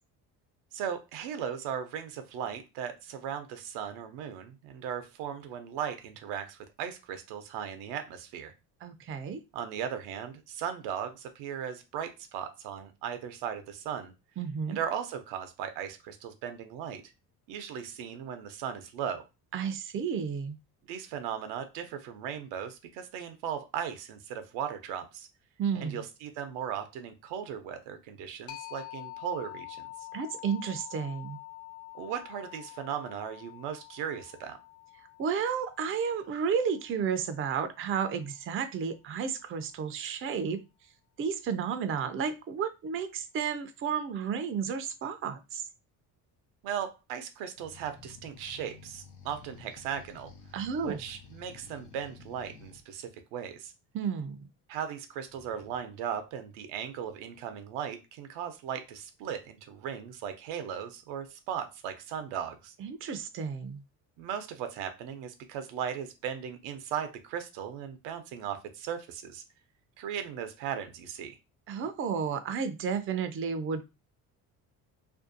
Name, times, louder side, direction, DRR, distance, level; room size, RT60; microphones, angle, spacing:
voice 1, 0.7-8.5 9.5-14.1 14.7-17.1 17.5-19.2 20.9-25.3 25.7-29.9 31.9-34.6 46.6-50.3 50.8-53.7 54.7-62.7 64.2-69.4 70.0-71.4, right 8 dB, 80° right, 8 dB, 0.6 m, -37 dB
voice 2, 8.8-9.4 14.4-14.8 19.5-20.6 25.6-26.0 30.1-31.4 35.2-40.6 41.2-45.6 50.5-51.0 53.9-54.4 62.8-63.8 71.7-73.8, right 6 dB, 30° right, 9 dB, 0.4 m, -32 dB
sound 1, 28.5-37.9, left 20 dB, 35° left, 0.4 m, -47 dB
sound 2, 47.6-52.8 55.3-55.8, left 5 dB, 85° left, 0.8 m, -52 dB
2.5 x 2.3 x 2.5 m, 0.26 s
supercardioid pair, 75°, 43 cm